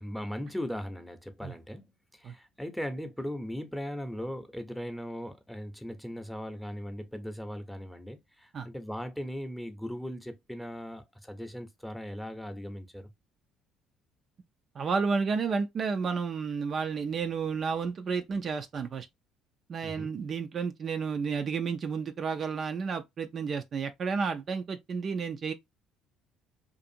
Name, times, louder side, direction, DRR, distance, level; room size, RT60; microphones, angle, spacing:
voice 1, 0.0-13.1 19.8-20.1, equal, 5° left, 0.7 m, -38 dB
voice 2, 14.8-19.1 19.7-25.5, right 5 dB, 45° right, 0.4 m, -31 dB
2.5 x 2.5 x 2.6 m
hypercardioid pair, 60°, 0 cm